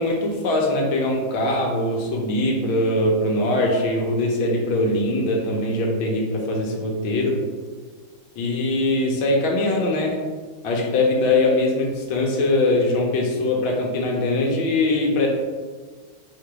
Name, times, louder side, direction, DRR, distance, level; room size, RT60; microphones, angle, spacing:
voice 1, 0.0-7.4 8.4-10.2 10.6-15.3, left 2 dB, 85° left, -1 dB, 1.5 m, -22 dB
3.5 x 2.8 x 4.7 m, 1.4 s
omnidirectional pair, 2.2 m